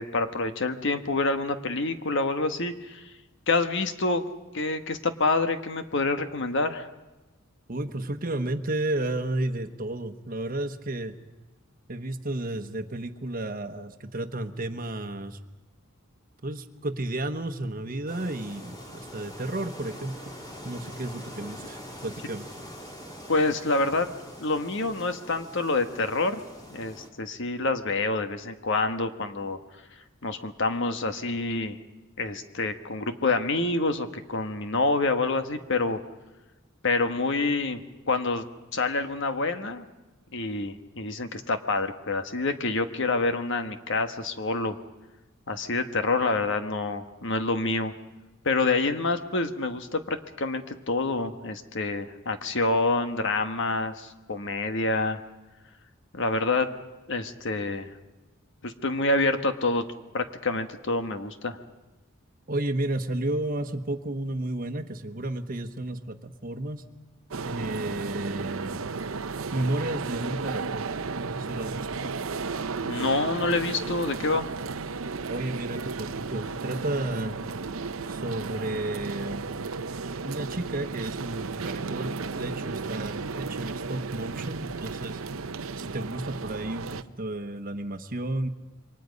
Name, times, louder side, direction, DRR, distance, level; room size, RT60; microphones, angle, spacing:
voice 1, 0.0-3.0 3.5-4.2 4.5-6.9 23.3-26.4 26.7-29.6 30.2-31.8 32.2-36.0 36.8-37.8 38.1-38.5 38.7-39.8 40.3-44.7 45.5-47.9 48.4-55.2 56.1-56.7 57.1-57.9 58.6-59.8 60.1-61.6 72.8-74.5, left 3 dB, 60° left, 8 dB, 1.4 m, -27 dB
voice 2, 7.7-11.1 11.9-15.4 16.4-20.3 20.6-22.5 62.5-66.8 67.4-68.8 69.5-70.9 71.2-72.1 75.3-77.4 78.1-79.5 80.2-85.2 85.8-88.5, right 1 dB, 40° right, 8 dB, 1.2 m, -32 dB
sound 1, 18.1-27.1, equal, 20° left, 3.1 m, -43 dB
sound 2, 67.3-87.0, right 4 dB, 80° right, 0.8 m, -34 dB
28.0 x 23.5 x 5.3 m, 1.1 s
head